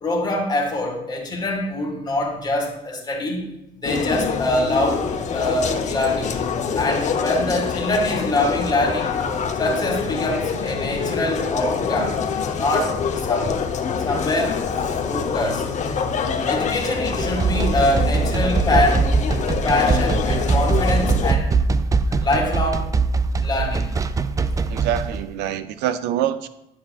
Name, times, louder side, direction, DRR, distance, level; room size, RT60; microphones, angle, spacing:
voice 1, 0.0-3.5 3.8-6.3 6.8-9.2 9.6-12.2 12.5-13.7 14.0-14.6 15.1-15.7 16.5-19.1 19.6-21.5 22.2-23.0 23.4-23.9, left 1 dB, 25° left, 1 dB, 2.0 m, -24 dB
sound 1, 3.8-21.3, left 6 dB, 45° left, 0.8 m, -25 dB
sound 2, 17.0-25.2, right 4 dB, 20° right, 0.3 m, -22 dB
voice 2, 24.7-26.5, right 11 dB, 90° right, 12 dB, 0.5 m, -25 dB
9.9 x 7.3 x 2.4 m, 0.85 s
cardioid pair, 110°, 17 cm